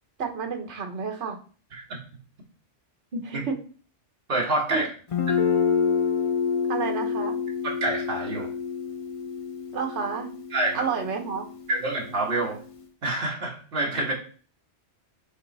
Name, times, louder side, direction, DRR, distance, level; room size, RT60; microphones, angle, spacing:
voice 1, 0.2-1.4 3.2-3.6 4.7-4.9 6.7-7.4 9.7-10.3 10.7-11.5, right 5 dB, 70° right, 4 dB, 1.3 m, -30 dB
voice 2, 3.1-3.4 4.3-4.9 7.6-8.5 10.5-10.8 11.7-12.6 13.0-14.1, right 2 dB, 50° right, -1 dB, 1.6 m, -27 dB
Guitar, 5.1-12.8, left 6 dB, 45° left, 0.4 m, -28 dB
8.2 x 3.1 x 4.0 m, 0.42 s
omnidirectional pair, 1.2 m